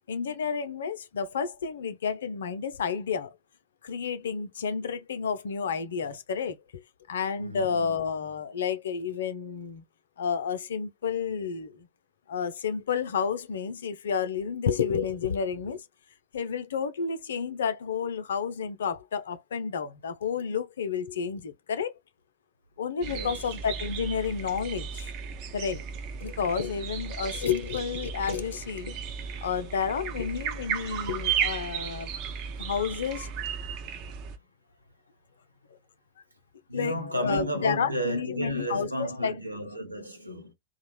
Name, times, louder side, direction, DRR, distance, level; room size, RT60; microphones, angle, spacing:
voice 1, 0.1-3.3 3.8-6.6 7.1-9.8 10.2-11.9 12.3-15.8 16.3-21.9 22.8-25.1 25.5-25.8 26.2-28.9 29.4-32.1 32.6-33.3 36.7-39.3, left 6 dB, 65° left, 0.4 m, -30 dB
voice 2, 7.4-7.9 23.0-23.4 36.7-40.5, equal, 85° right, 0.8 m, -33 dB
sound 1, 23.0-34.4, right 7 dB, 40° right, 0.5 m, -35 dB
2.4 x 2.1 x 3.0 m
figure-of-eight pair, 90°, 0 cm